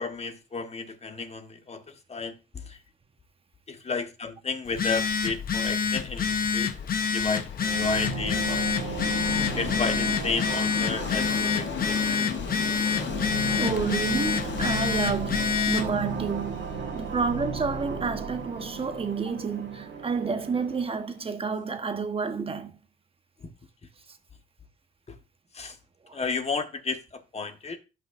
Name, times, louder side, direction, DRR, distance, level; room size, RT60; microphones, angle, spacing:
voice 1, 0.0-1.8 2.1-2.3 2.7-2.8 3.7-6.7 7.1-8.9 9.5-12.3 25.5-25.7 26.1-27.8, left 4 dB, 30° left, 1.3 m, -32 dB
Telephone, 4.7-15.9, left 6 dB, 50° left, 0.9 m, -27 dB
Train, 5.4-21.2, left 7 dB, 65° left, 1.2 m, -38 dB
sound 1, 7.6-20.9, right 4 dB, 70° right, 1.6 m, -36 dB
voice 2, 13.6-22.8 26.1-26.2, right 5 dB, 30° right, 1.2 m, -30 dB
12.5 x 5.6 x 2.6 m
cardioid pair, 90°, 20 cm